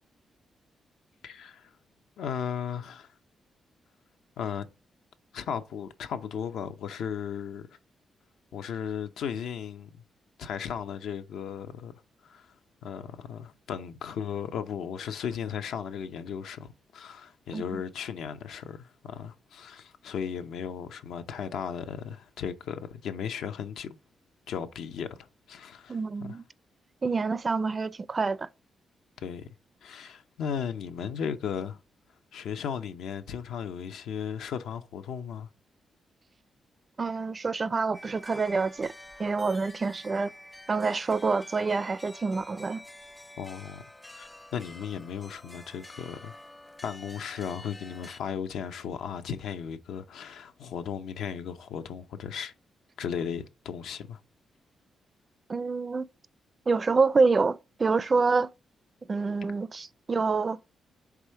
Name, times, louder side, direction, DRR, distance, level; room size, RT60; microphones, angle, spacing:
voice 1, 1.2-1.7 2.2-3.1 4.4-4.7 5.3-7.7 8.5-10.0 10.4-11.9 12.2-12.5 12.8-23.9 24.5-26.4 29.2-29.5 29.8-31.8 32.3-35.5 43.4-43.8 44.1-46.4 46.8-52.5 53.0-54.2, left 7 dB, 80° left, 0.6 m, -36 dB
voice 2, 25.9-26.4 27.0-28.5 37.0-38.9 39.2-40.3 40.7-42.8 55.5-56.0 56.7-58.5 59.1-60.6, right 4 dB, 40° right, 0.4 m, -27 dB
sound 1, 37.9-48.2, left 1 dB, 15° left, 0.5 m, -49 dB
4.8 x 3.5 x 5.6 m
cardioid pair, 60°, 0 cm